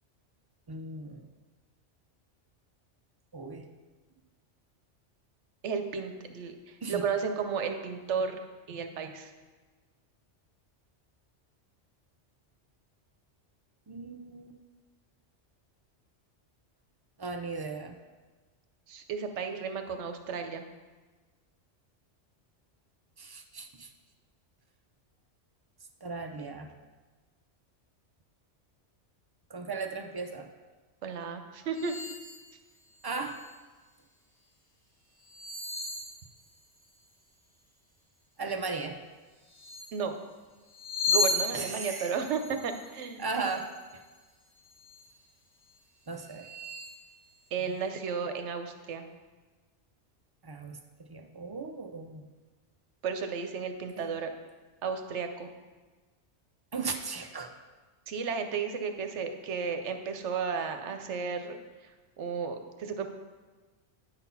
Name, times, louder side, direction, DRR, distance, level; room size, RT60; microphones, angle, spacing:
voice 1, 0.7-1.3 3.3-3.7 6.8-7.0 13.9-14.6 17.2-18.0 23.2-23.9 26.0-26.7 29.5-30.5 33.0-33.4 38.4-39.0 41.5-42.1 43.2-44.0 46.1-46.5 50.4-50.8 51.1-52.3 54.0-54.2 56.7-57.5, right 4 dB, 40° right, 4 dB, 0.3 m, -37 dB
voice 2, 5.6-8.4 8.7-9.3 18.9-20.6 31.0-31.9 39.9-40.1 41.1-43.2 47.5-49.1 53.0-54.3 54.8-55.5 58.1-61.9 62.2-63.1, right 6 dB, 75° right, 6 dB, 1.0 m, -33 dB
sound 1, 31.7-32.4 32.9-33.5 35.2-36.8 39.5-40.0 40.7-44.2 44.6-45.1 45.6-45.7 46.2-47.0, left 3 dB, 20° left, 1.2 m, -35 dB
9.5 x 4.1 x 5.6 m, 1.3 s
omnidirectional pair, 1.2 m